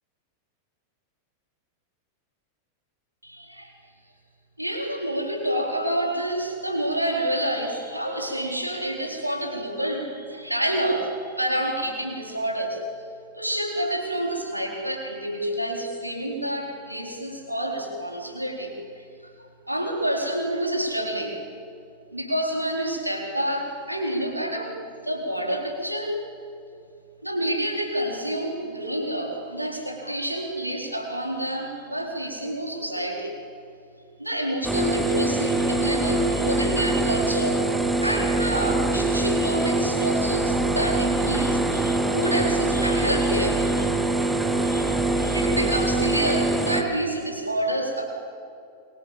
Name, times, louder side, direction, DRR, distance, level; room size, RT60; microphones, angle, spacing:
voice 1, 3.2-3.7 4.6-12.8 13.3-19.3 19.7-21.4 22.1-24.8 25.0-26.2 27.2-33.3 34.2-37.6 38.0-44.3 44.6-48.0, right 1 dB, 85° right, 1 dB, 4.4 m, -28 dB
sound 1, 34.6-46.8, right 2 dB, 5° right, 2.6 m, -24 dB
28.5 x 24.0 x 7.4 m, 2.5 s
figure-of-eight pair, 90°, 0 cm